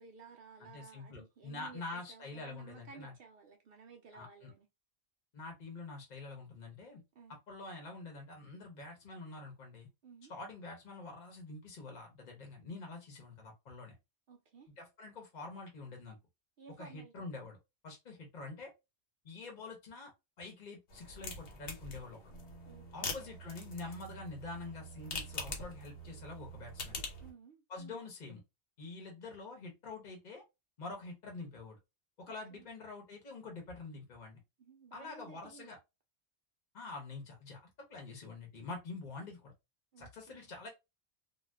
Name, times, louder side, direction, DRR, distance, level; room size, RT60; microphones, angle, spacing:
voice 1, 0.0-4.7 7.1-7.4 10.0-10.3 14.3-14.7 16.6-17.3 22.6-23.3 27.2-28.0 32.3-32.7 34.6-35.7 39.9-40.4, right 5 dB, 65° right, 0.7 m, -55 dB
voice 2, 0.6-3.1 4.1-4.5 5.3-7.0 7.5-9.9 10.3-14.0 14.8-16.2 16.8-17.6 17.8-18.7 19.2-20.1 20.4-22.3 22.9-27.0 27.7-28.4 28.8-30.4 30.8-31.8 32.2-34.4 34.9-35.8 36.7-37.6 37.9-39.5 40.0-40.7, left 3 dB, 45° left, 0.9 m, -46 dB
sound 1, 20.9-27.3, left 2 dB, 80° left, 1.1 m, -44 dB
2.4 x 2.3 x 3.3 m
omnidirectional pair, 1.1 m